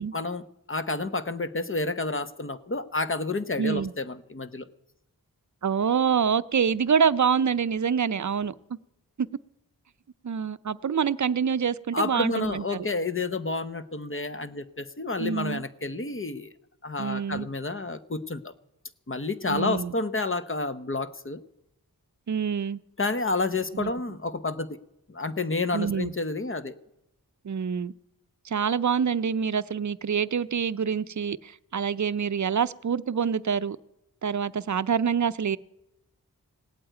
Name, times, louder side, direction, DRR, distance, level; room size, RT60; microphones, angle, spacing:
voice 1, 0.1-4.7 11.9-16.5 16.8-18.5 19.1-21.4 23.0-24.8 25.1-26.7, left 3 dB, 35° left, 13 dB, 0.9 m, -30 dB
voice 2, 3.6-3.9 5.6-8.5 9.2-9.3 10.2-12.8 15.2-15.6 17.0-17.5 19.5-19.9 22.3-22.8 23.8-23.9 25.7-26.1 27.4-27.9 28.4-33.8 34.2-35.6, right 7 dB, 55° right, 16 dB, 0.6 m, -26 dB
17.5 x 8.7 x 9.1 m, 0.87 s
wide cardioid pair, 45°, 36 cm